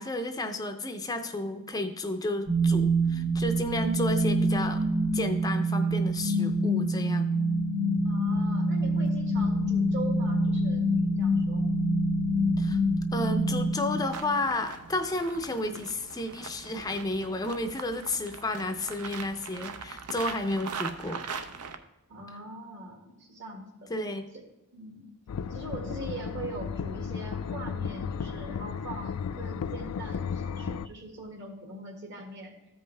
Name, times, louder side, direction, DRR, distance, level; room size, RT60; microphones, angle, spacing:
voice 1, 0.0-4.8 5.1-7.3 12.6-12.8 13.1-21.2 23.9-24.3, left 1 dB, 15° left, 6 dB, 0.5 m, -32 dB
sound 1, 2.5-14.4, right 1 dB, 25° right, 0.8 m, -26 dB
voice 2, 8.0-11.7 22.1-23.9 24.3-24.4 24.7-25.1 25.5-32.5, right 2 dB, 55° right, 2 dB, 1.8 m, -42 dB
sound 2, 14.0-21.8, right 5 dB, 85° right, 0.7 m, -41 dB
sound 3, 25.3-30.9, left 6 dB, 75° left, 0.4 m, -34 dB
14.0 x 5.4 x 3.3 m, 1.0 s
head